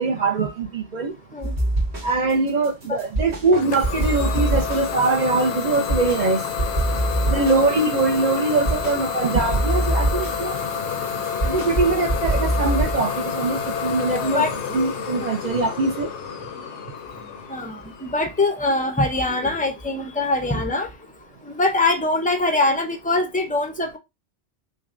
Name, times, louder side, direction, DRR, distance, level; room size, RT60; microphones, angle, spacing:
voice 1, 0.0-1.1 2.0-6.4 7.3-10.6 11.4-14.4 14.7-16.1, right 3 dB, 50° right, 0.6 m, -22 dB
sound 1, 1.4-2.3 2.6-3.5 3.8-6.2 6.6-9.0 9.3-13.0, right 1 dB, 70° right, 2.2 m, -24 dB
Idling / Domestic sounds home sounds, 3.5-19.1, left 7 dB, 75° left, 0.9 m, -29 dB
voice 2, 7.2-7.6 14.3-14.5 15.2-15.4 17.5-20.9 21.5-24.0, left 2 dB, 10° left, 0.4 m, -23 dB
6.0 x 2.1 x 2.5 m
omnidirectional pair, 1.2 m